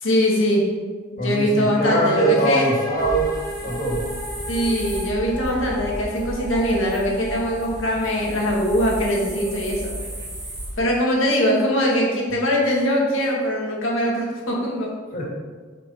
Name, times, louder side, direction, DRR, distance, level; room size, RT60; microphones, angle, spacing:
voice 1, 0.0-0.7 1.1-2.7 4.5-9.9 10.8-14.9, equal, 70° left, -2 dB, 2.1 m, -22 dB
voice 2, 1.2-3.3 3.6-4.0 15.1-15.2, right 2 dB, 40° left, -5 dB, 2.6 m, -22 dB
sound 1, 1.8-9.5, equal, 20° left, 2.1 m, -34 dB
sound 2, 3.0-10.8, right 1 dB, 20° right, 2.5 m, -34 dB
8.4 x 5.3 x 4.6 m, 1.5 s
head